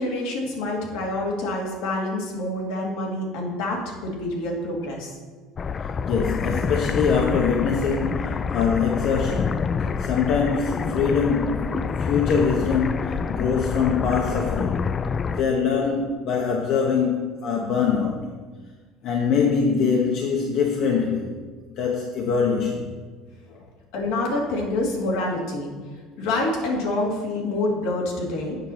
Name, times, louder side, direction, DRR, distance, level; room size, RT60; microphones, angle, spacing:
voice 1, 0.0-5.2 23.9-25.7 26.2-28.6, left 2 dB, 75° left, -1 dB, 2.3 m, -27 dB
sound 1, 5.6-15.4, left 5 dB, 30° left, 0.3 m, -27 dB
voice 2, 5.8-14.9 15.3-18.3 19.0-21.3 21.7-22.9 23.5-23.6, left 5 dB, 60° left, 0 dB, 1.1 m, -23 dB
8.0 x 6.0 x 5.6 m, 1.4 s
supercardioid pair, 115°, 0 cm